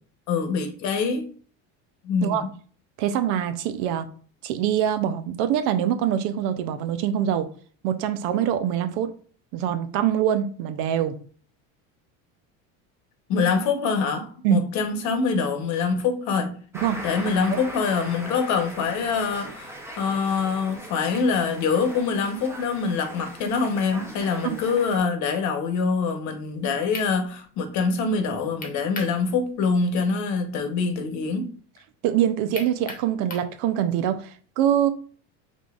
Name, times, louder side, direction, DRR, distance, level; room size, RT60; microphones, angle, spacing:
voice 1, 0.3-1.2 2.0-2.5 13.3-16.5 17.0-31.5, left 5 dB, 55° left, 1.0 m, -25 dB
voice 2, 3.0-4.1 4.4-7.5 7.8-9.1 9.5-11.2 14.4-14.6 16.8-17.0 17.5-17.6 24.4-24.6 32.0-34.9, right 10 dB, 80° right, 0.7 m, -24 dB
walking through berlin, 16.7-25.0, right 1 dB, 5° right, 0.8 m, -40 dB
sound 1, 26.9-27.1 28.6-29.2 29.6-29.7 32.5-33.5, left 3 dB, 25° left, 1.1 m, -36 dB
5.1 x 3.7 x 2.4 m
cardioid pair, 135°, 35 cm